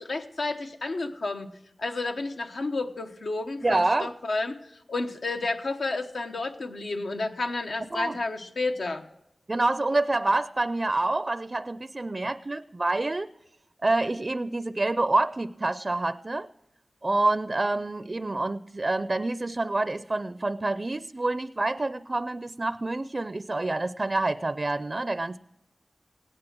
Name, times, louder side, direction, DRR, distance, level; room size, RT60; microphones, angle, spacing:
voice 1, 0.0-1.5 1.8-4.6 4.9-9.0, left 3 dB, 80° left, 5 dB, 1.1 m, -31 dB
voice 2, 3.6-4.1 7.9-8.2 9.5-13.3 13.8-16.5 17.0-25.4, right 2 dB, 45° right, 14 dB, 0.4 m, -27 dB
16.5 x 9.8 x 6.0 m, 0.86 s
cardioid pair, 45°, 0 cm